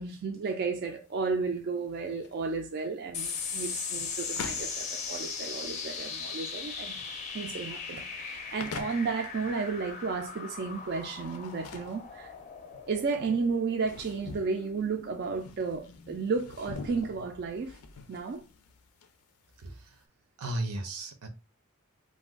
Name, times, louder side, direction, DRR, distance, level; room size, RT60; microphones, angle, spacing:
voice 1, 0.0-7.0 7.3-12.3 12.9-17.8 18.1-18.4, right 4 dB, 45° right, 0.3 m, -33 dB
sound 1, 0.8-20.0, left 5 dB, 90° left, 0.5 m, -47 dB
sound 2, 3.1-17.9, left 5 dB, 30° left, 0.5 m, -39 dB
voice 2, 19.6-20.0 20.4-21.3, right 1 dB, 85° right, 0.6 m, -35 dB
2.5 x 2.3 x 3.5 m
head